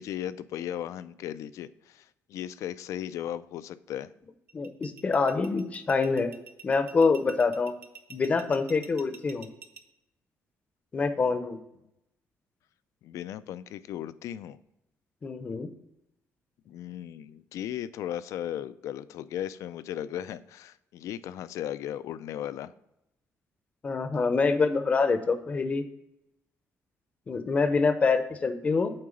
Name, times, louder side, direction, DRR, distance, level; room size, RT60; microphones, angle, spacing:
voice 1, 0.0-4.1 13.0-14.6 16.7-22.7, left 11 dB, 75° left, 15 dB, 0.4 m, -36 dB
voice 2, 4.5-6.3 6.6-7.7 8.1-9.5 10.9-11.6 15.2-15.7 23.8-25.8 27.3-28.9, left 4 dB, 25° left, 9 dB, 0.6 m, -25 dB
sound 1, 4.5-9.8, right 6 dB, 40° right, 0.7 m, -47 dB
8.7 x 3.8 x 5.0 m, 0.86 s
cardioid pair, 160°, 5 cm